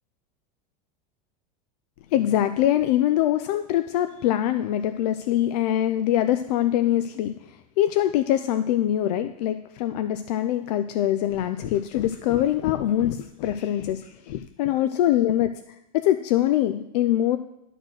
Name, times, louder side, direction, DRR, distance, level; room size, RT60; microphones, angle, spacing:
voice 1, 2.1-17.4, left 12 dB, 70° left, 10 dB, 0.5 m, -23 dB
11.0 x 4.3 x 6.3 m, 0.84 s
supercardioid pair, 155°, 21 cm